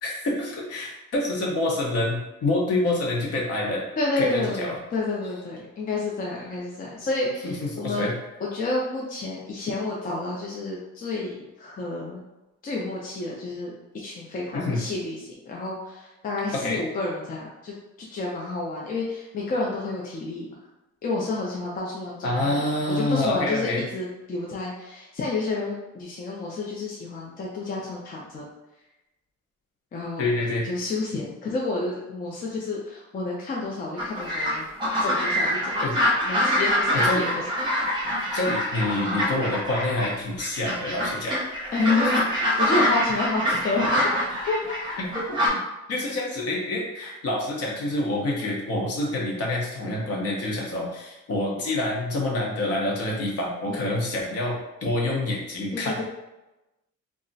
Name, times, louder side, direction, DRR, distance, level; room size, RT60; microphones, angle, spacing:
voice 1, 0.0-3.9 4.2-4.8 7.4-8.1 14.5-14.8 16.5-16.8 22.2-23.9 30.2-30.7 35.8-35.9 36.9-37.3 38.3-41.4 45.0-45.6 45.9-56.0, left 2 dB, 55° left, -2 dB, 0.8 m, -27 dB
voice 2, 4.0-8.1 8.4-12.2 12.6-20.5 21.0-28.4 29.9-30.3 30.6-34.7 35.0-35.9 36.2-37.5 41.7-44.1 44.5-44.6 48.4-48.5 53.7-53.9 55.7-56.0, left 3 dB, 30° left, -3 dB, 0.4 m, -30 dB
sound 1, 34.0-40.1 40.4-45.5, equal, 15° right, 0.7 m, -25 dB
2.3 x 2.0 x 3.8 m, 0.99 s
cardioid pair, 170°, 29 cm